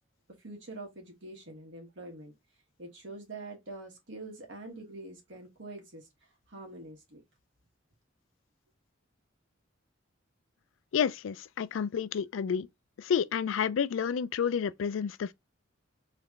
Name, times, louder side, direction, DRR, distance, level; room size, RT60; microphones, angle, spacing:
voice 1, 0.4-2.3 2.8-6.1 6.5-7.2, right 2 dB, 70° right, 1.6 m, -45 dB
voice 2, 10.9-12.7 13.0-15.3, left 7 dB, 85° left, 0.4 m, -30 dB
3.3 x 2.9 x 3.8 m
head